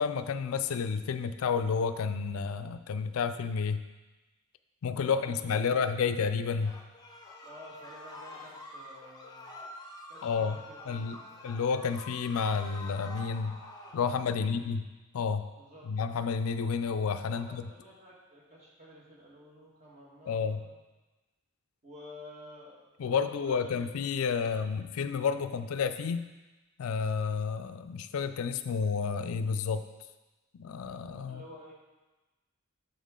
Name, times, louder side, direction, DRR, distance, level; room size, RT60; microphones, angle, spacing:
voice 1, 0.0-3.8 4.8-6.7 10.2-10.6 10.9-11.2 11.4-13.6 13.9-14.8 15.1-15.5 15.9-17.6 20.3-20.6 23.0-26.3 26.8-29.8 30.5-31.4, left 5 dB, 75° left, 10 dB, 0.4 m, -30 dB
voice 2, 5.0-6.2 7.4-9.5 10.1-11.4 14.3-14.7 15.6-15.9 17.3-20.7 21.8-23.7 31.3-31.7, left 1 dB, 35° right, -4 dB, 1.5 m, -51 dB
sound 1, 6.6-14.0, left 2 dB, 20° left, 0.7 m, -47 dB
6.9 x 5.5 x 3.7 m, 1.1 s
head